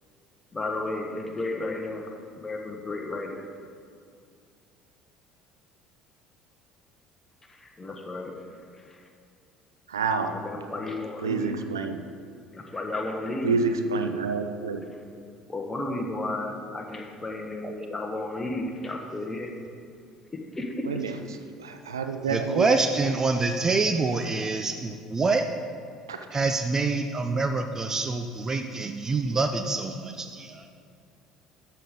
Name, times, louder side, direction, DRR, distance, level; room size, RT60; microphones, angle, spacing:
voice 1, 0.5-2.1 2.4-3.5 7.5-8.5 8.8-9.0 10.3-11.6 12.5-13.6 15.5-19.5 20.5-20.9, left 2 dB, 15° left, 1 dB, 1.4 m, -33 dB
voice 2, 9.9-10.4 11.2-12.0 13.4-14.8 15.3-15.4 20.8-22.7 26.1-26.3, right 4 dB, 80° right, 7 dB, 0.5 m, -28 dB
voice 3, 17.6-17.9 22.3-25.4 26.3-30.7, right 3 dB, 25° right, 6 dB, 0.6 m, -26 dB
12.5 x 6.6 x 3.8 m, 2.3 s
figure-of-eight pair, 60°, 2 cm